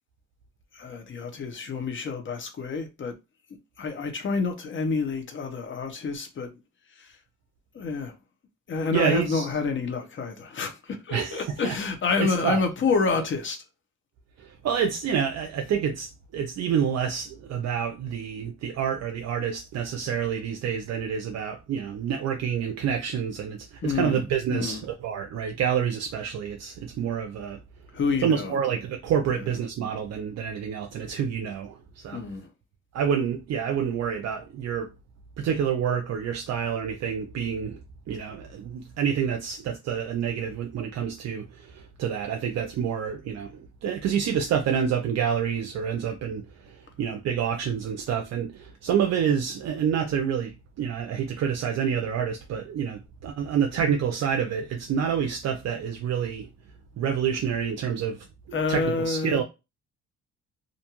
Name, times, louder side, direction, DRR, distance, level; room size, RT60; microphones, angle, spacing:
voice 1, 0.7-3.1 3.8-6.5 6.9-7.2 7.7-8.1 8.7-13.6 23.8-24.2 24.5-24.8 27.9-28.6 29.2-29.5 32.1-32.5 58.5-59.4, left 4 dB, 40° left, 0.7 m, -28 dB
voice 2, 8.9-9.5 11.1-11.8 12.2-12.6 14.4-27.6 28.2-32.2 32.9-34.9 35.4-37.8 38.1-56.5 57.0-59.4, right 8 dB, 55° right, 0.5 m, -28 dB
2.5 x 2.2 x 2.9 m
cardioid pair, 105°, 32 cm